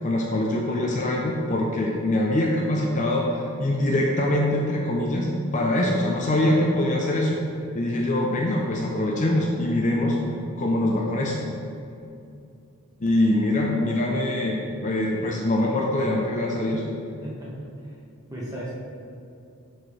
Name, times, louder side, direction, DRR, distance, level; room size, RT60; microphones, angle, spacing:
voice 1, 0.0-5.3 5.5-7.4 7.7-10.2 10.6-11.4 13.0-16.8, left 1 dB, 35° left, -1 dB, 0.6 m, -23 dB
voice 2, 17.2-17.5 17.8-17.9 18.3-18.7, right 1 dB, 15° right, -7 dB, 1.5 m, -35 dB
10.5 x 4.4 x 3.3 m, 2.6 s
head